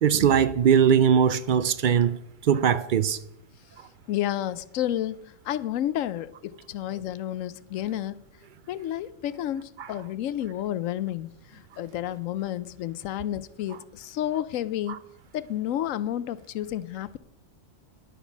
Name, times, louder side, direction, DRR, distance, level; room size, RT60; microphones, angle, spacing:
voice 1, 0.0-3.2 9.8-9.9 14.9-15.0, right 8 dB, 65° right, 0.5 m, -21 dB
voice 2, 4.1-5.2 5.4-8.2 8.7-15.0 15.3-17.2, left 12 dB, 80° left, 1.0 m, -31 dB
11.0 x 8.1 x 6.0 m
omnidirectional pair, 1.3 m